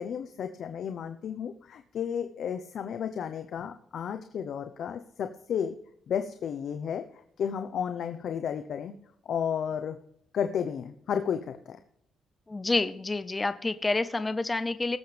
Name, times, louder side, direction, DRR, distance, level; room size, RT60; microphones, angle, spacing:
voice 1, 0.0-5.8 6.1-7.0 7.4-8.9 9.2-10.0 10.3-11.8, left 8 dB, 65° left, 8 dB, 0.8 m, -32 dB
voice 2, 12.5-15.0, left 2 dB, 20° left, 13 dB, 0.6 m, -28 dB
18.5 x 7.8 x 3.4 m, 0.73 s
cardioid pair, 90°, 0 cm